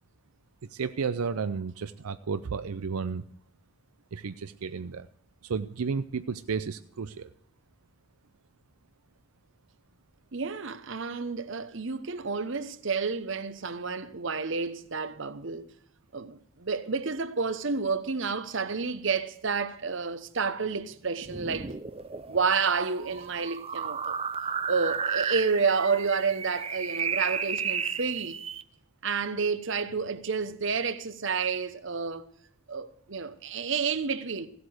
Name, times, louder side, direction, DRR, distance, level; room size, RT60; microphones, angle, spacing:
voice 1, 0.7-3.2 4.1-5.1 5.4-7.3, right 5 dB, 85° right, 0.5 m, -32 dB
voice 2, 10.3-15.7 16.1-21.7 22.3-24.1 24.7-28.4 29.0-32.3 32.7-34.5, right 5 dB, 60° right, 0.9 m, -30 dB
sound 1, 21.2-28.6, right 6 dB, 25° right, 0.5 m, -33 dB
16.0 x 8.2 x 6.4 m
head